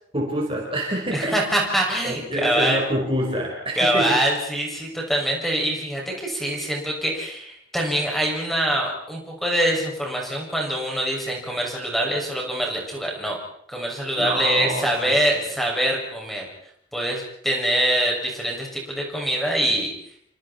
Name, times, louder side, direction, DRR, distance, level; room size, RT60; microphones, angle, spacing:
voice 1, 0.1-1.4 2.0-4.2 14.1-15.4, right 1 dB, 30° right, -1 dB, 4.7 m, -27 dB
voice 2, 1.1-2.8 3.8-13.4 13.7-16.5 16.9-19.9, right 1 dB, ahead, -1 dB, 6.7 m, -24 dB
29.0 x 25.0 x 4.4 m, 0.66 s
head